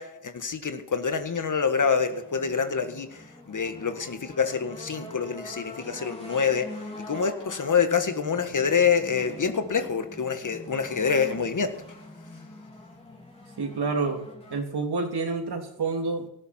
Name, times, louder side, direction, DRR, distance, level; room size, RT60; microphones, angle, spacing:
voice 1, 0.0-11.9, left 6 dB, 40° left, 8 dB, 1.6 m, -26 dB
sound 1, 1.8-14.6, left 1 dB, 10° left, 3.3 m, -44 dB
voice 2, 13.6-16.3, right 4 dB, 55° right, 3 dB, 3.1 m, -29 dB
17.0 x 13.0 x 4.4 m, 0.80 s
cardioid pair, 70°, 48 cm